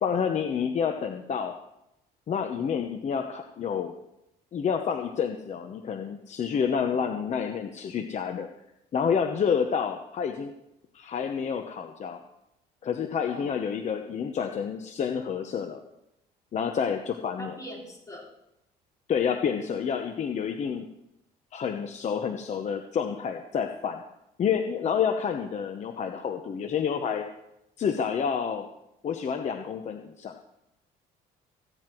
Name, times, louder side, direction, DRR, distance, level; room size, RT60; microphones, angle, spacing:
voice 1, 0.0-1.5 2.3-3.9 4.5-8.5 8.9-10.5 10.9-12.2 12.8-15.8 16.5-17.6 19.1-20.8 21.5-24.0 24.4-27.3 27.8-28.7 29.0-30.3, left 7 dB, 45° left, 5 dB, 0.9 m, -29 dB
voice 2, 6.5-7.0 13.2-13.6 17.4-18.3 19.5-19.8, equal, 20° left, -3 dB, 4.9 m, -43 dB
15.5 x 9.5 x 4.6 m, 0.85 s
cardioid pair, 110°, 17 cm